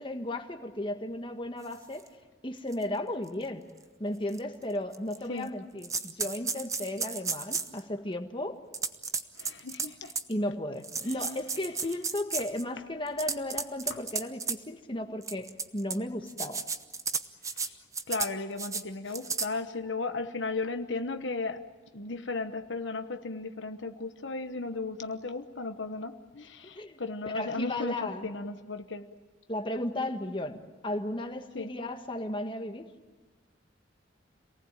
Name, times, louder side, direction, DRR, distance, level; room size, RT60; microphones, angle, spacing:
voice 1, 0.0-2.1 2.4-3.6 4.0-8.6 10.3-16.6 26.7-27.0 27.3-28.3 29.5-32.9, left 1 dB, 25° left, 5 dB, 1.6 m, -35 dB
sound 1, 2.0-2.1 2.7-2.8 3.3-3.4 4.3-4.4 4.9-5.5 5.8-7.8 8.7-10.3 10.8-12.6 13.1-14.6 15.2-16.0 16.3-17.7 17.9-18.3 18.6-18.8 19.1-19.5, right 5 dB, 15° right, 0.9 m, -33 dB
voice 2, 9.4-10.1 17.6-17.8 18.1-21.6 21.9-29.1 31.5-31.7, left 3 dB, 80° left, 8 dB, 1.1 m, -35 dB
27.5 x 19.0 x 9.0 m, 1.3 s
head